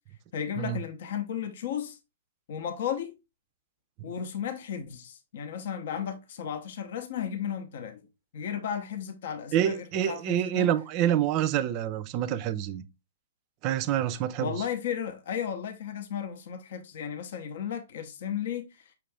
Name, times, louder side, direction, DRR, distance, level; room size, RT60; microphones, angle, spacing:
voice 1, 0.3-2.0 2.5-3.2 4.0-8.0 8.3-10.7 14.4-18.9, left 8 dB, 55° left, 0.6 m, -34 dB
voice 2, 9.5-12.8 13.6-14.5, right 11 dB, 35° right, 0.4 m, -27 dB
5.7 x 2.5 x 3.3 m
figure-of-eight pair, 115°, 0 cm